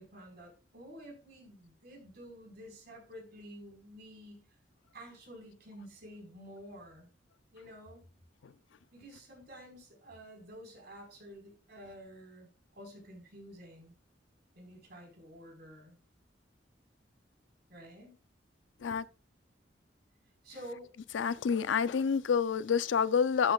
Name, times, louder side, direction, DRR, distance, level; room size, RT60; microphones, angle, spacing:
voice 1, 0.0-4.4 4.9-7.1 7.5-8.0 8.9-13.9 14.5-16.0 17.7-18.2 20.4-20.9, equal, 60° right, 4.5 m, -50 dB
voice 2, 21.1-23.5, left 6 dB, 90° left, 0.5 m, -28 dB
13.0 x 8.0 x 2.4 m
head